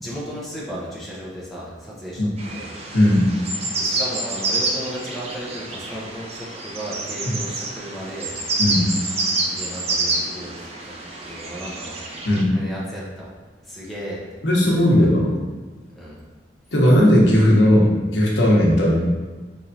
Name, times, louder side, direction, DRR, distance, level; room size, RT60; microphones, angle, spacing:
voice 1, 0.0-2.7 3.8-8.3 9.5-10.9 11.2-12.0 12.4-13.3 13.6-14.4 14.7-15.1 15.9-16.2, equal, ahead, -7 dB, 0.9 m, -35 dB
sound 1, 2.4-12.4, right 2 dB, 35° right, 0.5 m, -27 dB
voice 2, 2.9-3.3 8.6-8.8 12.2-12.5 14.4-15.3 16.7-19.0, equal, 75° left, -4 dB, 1.0 m, -16 dB
4.4 x 3.2 x 2.7 m, 1.4 s
head